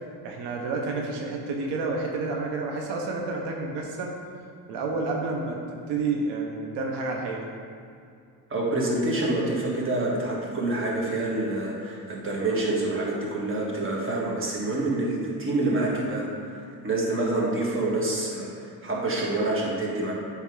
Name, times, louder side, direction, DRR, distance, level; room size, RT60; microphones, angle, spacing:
voice 1, 0.2-4.1 4.7-7.5, right 3 dB, 90° right, 0 dB, 0.9 m, -30 dB
voice 2, 8.5-20.1, right 2 dB, 30° right, -3 dB, 1.6 m, -27 dB
8.2 x 3.5 x 4.8 m, 2.4 s
cardioid pair, 105°, 40 cm